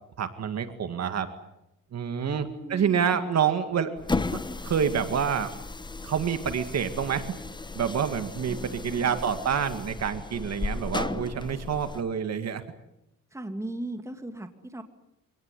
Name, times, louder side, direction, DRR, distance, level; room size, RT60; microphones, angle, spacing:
voice 1, 0.2-1.3 1.9-3.9 4.6-5.5 6.0-7.3 7.7-12.6, right 7 dB, 55° right, 9 dB, 2.0 m, -27 dB
voice 2, 2.2-3.3 8.4-9.2 13.3-14.8, right 1 dB, 10° right, 6 dB, 2.6 m, -38 dB
sound 1, 4.0-12.0, left 3 dB, 15° left, 1.0 m, -35 dB
26.0 x 19.0 x 9.9 m, 0.88 s
cardioid pair, 120°, 31 cm